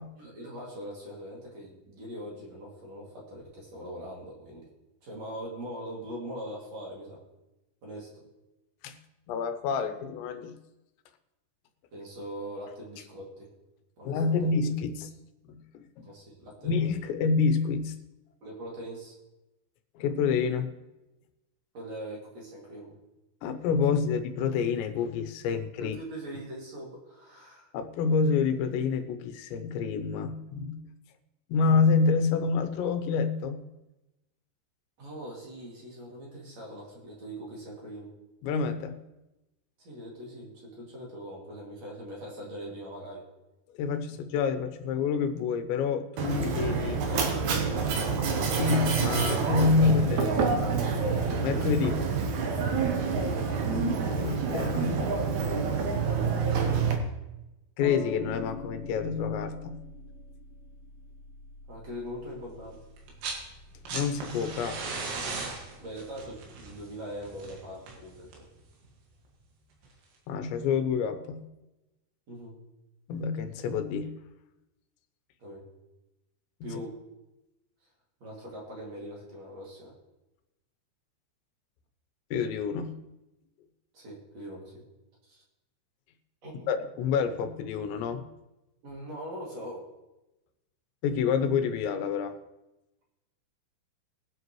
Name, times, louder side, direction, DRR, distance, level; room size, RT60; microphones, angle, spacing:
voice 1, 0.2-4.7 5.0-7.2 7.8-8.2 11.9-13.5 14.0-14.5 16.0-16.7 18.4-19.2 21.7-22.9 25.8-27.7 35.0-38.1 39.8-43.3 46.9-47.7 52.9-53.4 61.7-62.8 65.8-68.4 72.3-72.5 75.4-75.6 76.6-77.0 78.2-79.9 83.9-84.8 85.3-85.4 86.4-86.8 88.8-89.9, equal, 45° right, -4 dB, 3.3 m, -41 dB
voice 2, 9.3-10.5 14.0-15.1 15.5-15.9 16.6-18.0 20.0-20.7 23.4-26.0 27.7-30.9 31.5-33.6 38.4-39.0 43.8-47.0 48.5-50.6 51.4-52.0 54.1-55.1 57.8-59.8 63.9-64.8 70.3-71.4 73.1-74.2 76.6-76.8 82.3-83.0 86.7-88.3 91.0-92.4, left 5 dB, 90° left, 8 dB, 3.2 m, -28 dB
Mechanisms, 46.2-56.9, right 5 dB, 70° right, 1.8 m, -27 dB
sound 1, 57.8-66.3, left 3 dB, 45° left, 2.5 m, -44 dB
sound 2, 63.0-63.5 63.7-68.6 69.8-69.9, right 3 dB, 90° right, 4.3 m, -37 dB
21.5 x 8.0 x 3.1 m, 0.98 s
omnidirectional pair, 5.0 m